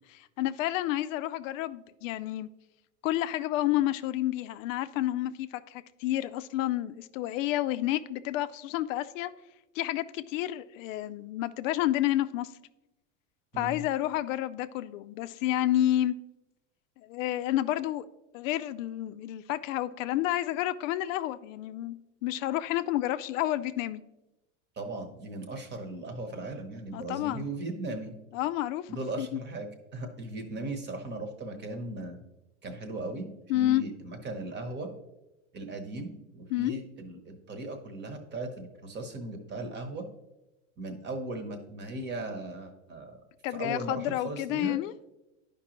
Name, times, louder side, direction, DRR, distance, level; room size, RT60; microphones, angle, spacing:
voice 1, 0.1-2.5 3.0-9.3 9.8-12.5 13.6-16.1 17.1-18.0 18.3-24.0 26.9-27.5 28.3-28.9 29.2-29.3 33.5-33.8 36.5-36.7 43.4-45.1, left 14 dB, 80° left, 0.5 m, -30 dB
voice 2, 24.8-28.1 28.9-32.2 32.6-33.3 33.5-34.9 35.5-40.1 40.8-43.2 43.5-44.8, right 2 dB, 25° right, 1.0 m, -38 dB
10.5 x 5.2 x 3.0 m
supercardioid pair, 135°, 38 cm